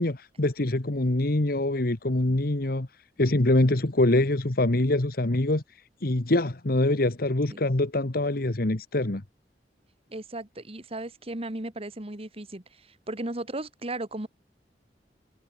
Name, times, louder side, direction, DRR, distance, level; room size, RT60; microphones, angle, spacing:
voice 1, 0.0-2.9 3.2-5.6 6.0-9.2, left 1 dB, 55° left, 1.4 m, -24 dB
voice 2, 10.1-14.3, right 2 dB, 35° right, 1.9 m, -36 dB
head